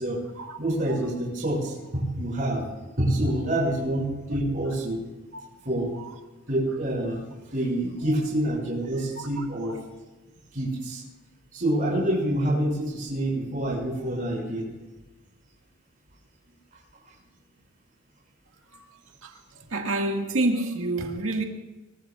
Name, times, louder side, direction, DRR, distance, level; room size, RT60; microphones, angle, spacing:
voice 1, 0.6-2.6 3.0-5.0 5.6-5.9 6.5-7.3 7.5-9.8 10.5-11.0 11.5-14.7, right 1 dB, 40° right, 6.5 m, -27 dB
voice 2, 9.2-9.8 18.7-18.9 19.2-19.3 19.7-21.4, right 2 dB, 75° right, 1.9 m, -29 dB
24.5 x 23.5 x 2.5 m
head